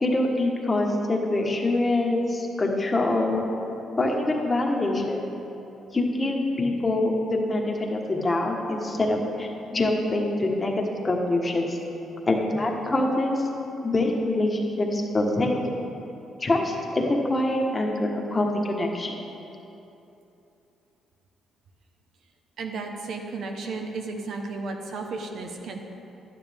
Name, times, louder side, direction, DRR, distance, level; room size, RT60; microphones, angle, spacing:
voice 1, 0.0-3.5 4.0-5.2 5.9-10.7 11.0-11.8 12.3-13.5 13.8-15.6 16.4-19.1, left 2 dB, 25° left, 1 dB, 1.3 m, -25 dB
voice 2, 22.6-25.9, right 3 dB, 70° right, 3 dB, 1.0 m, -33 dB
11.0 x 9.5 x 3.6 m, 2.9 s
cardioid pair, 90°, 0 cm